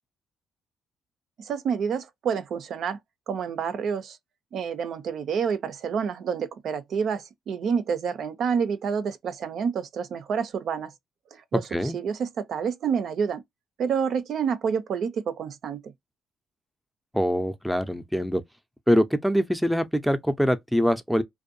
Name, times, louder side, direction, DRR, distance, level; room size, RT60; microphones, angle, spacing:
voice 1, 1.4-3.0 3.3-4.2 4.5-10.9 11.3-13.4 13.8-15.9, right 6 dB, 65° right, 0.4 m, -28 dB
voice 2, 17.1-18.4 18.9-21.2, equal, ahead, 0.5 m, -23 dB
2.6 x 2.2 x 2.5 m
cardioid pair, 90°, 0 cm